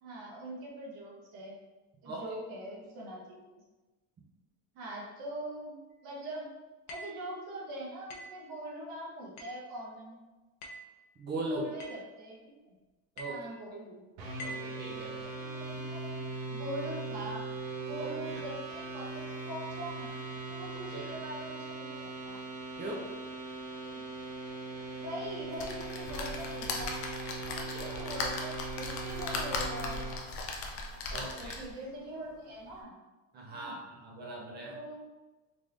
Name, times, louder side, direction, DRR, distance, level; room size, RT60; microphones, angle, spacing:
voice 1, 0.0-1.6 2.0-3.4 4.7-6.5 6.9-10.2 11.5-12.4 12.7-12.8 13.2-14.0 15.2-17.4 17.8-20.2 20.5-22.4 23.8-24.0 24.9-27.0 27.4-30.1 31.1-32.9 33.5-33.8 34.6-35.0, right 1 dB, 60° right, -3 dB, 1.3 m, -42 dB
sound 1, 6.9-7.3 8.1-8.4 9.4-9.7 10.6-10.9 11.8-12.1 13.2-13.5 14.4-14.7, right 1 dB, 80° left, 0.8 m, -45 dB
voice 2, 11.2-11.7 13.2-13.5 14.4-15.2 17.9-18.4 20.9-21.1 22.8-23.1 31.1-31.6 33.3-34.8, right 1 dB, 25° right, -1 dB, 0.6 m, -40 dB
sound 2, 14.2-30.2, right 3 dB, 80° right, 1.1 m, -40 dB
sound 3, 25.6-31.8 32.3-32.4 32.7-32.8, left 3 dB, 35° left, 0.5 m, -38 dB
3.8 x 3.2 x 2.5 m, 1.2 s
cardioid pair, 160°, 39 cm